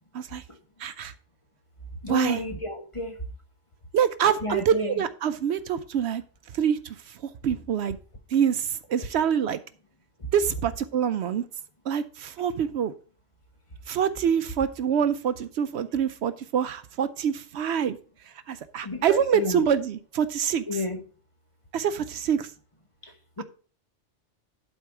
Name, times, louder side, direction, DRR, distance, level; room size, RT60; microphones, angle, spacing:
voice 1, 0.8-1.1 2.1-2.4 3.9-6.2 6.5-7.2 7.4-8.0 8.3-9.6 10.3-11.5 11.9-12.9 13.9-18.0 18.5-20.8 21.7-22.5 23.4-23.5, right 8 dB, 70° right, 0.8 m, -26 dB
voice 2, 2.0-3.1 4.4-5.0 18.8-19.6 20.7-21.0 23.0-23.1 23.4-23.5, left 2 dB, 30° left, 1.1 m, -31 dB
11.0 x 4.4 x 4.6 m
omnidirectional pair, 1.2 m